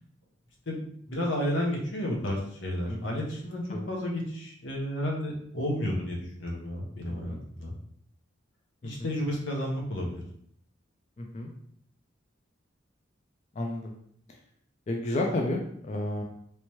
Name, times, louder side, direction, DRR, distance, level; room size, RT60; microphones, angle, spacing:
voice 1, 0.7-7.7 8.8-10.2, left 1 dB, 80° left, -1 dB, 0.9 m, -32 dB
voice 2, 2.9-3.2 3.7-3.9 7.1-7.4 8.8-9.1 11.2-11.5 13.5-13.9 14.9-16.2, left 1 dB, 35° left, 1 dB, 0.4 m, -32 dB
3.2 x 3.0 x 3.0 m, 0.67 s
head